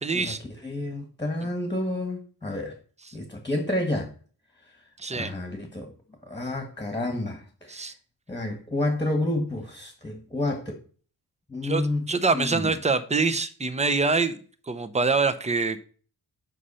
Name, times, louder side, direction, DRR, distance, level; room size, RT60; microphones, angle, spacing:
voice 1, 0.0-0.4 5.0-5.3 7.7-7.9 11.6-14.4 14.7-15.8, right 4 dB, 15° right, 0.7 m, -25 dB
voice 2, 0.6-2.8 3.1-4.1 5.1-5.9 6.3-7.9 8.3-10.7 11.5-12.1 12.3-12.7, left 1 dB, 10° left, 1.6 m, -29 dB
8.2 x 5.7 x 5.6 m
wide cardioid pair, 130°, 40 cm